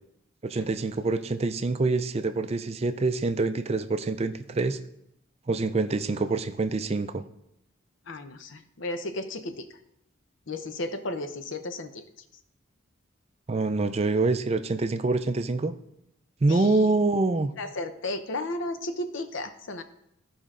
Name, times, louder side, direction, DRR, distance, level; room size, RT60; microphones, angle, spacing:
voice 1, 0.4-4.8 5.5-7.2 13.5-15.7 16.4-17.5, right 3 dB, 30° right, 10 dB, 0.4 m, -26 dB
voice 2, 8.1-9.7 10.5-12.0 16.5-16.9 17.6-19.8, left 2 dB, 65° left, 9 dB, 0.7 m, -34 dB
14.5 x 5.1 x 3.7 m, 0.78 s
head